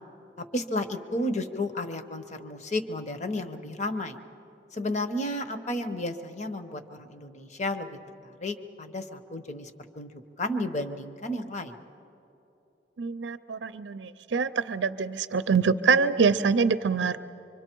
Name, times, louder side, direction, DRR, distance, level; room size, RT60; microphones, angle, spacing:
voice 1, 0.4-4.2 4.7-8.0 8.4-11.8, left 1 dB, 40° left, 8 dB, 1.0 m, -32 dB
voice 2, 13.0-17.2, right 5 dB, 90° right, 13 dB, 0.5 m, -25 dB
25.0 x 24.5 x 4.6 m, 2.8 s
head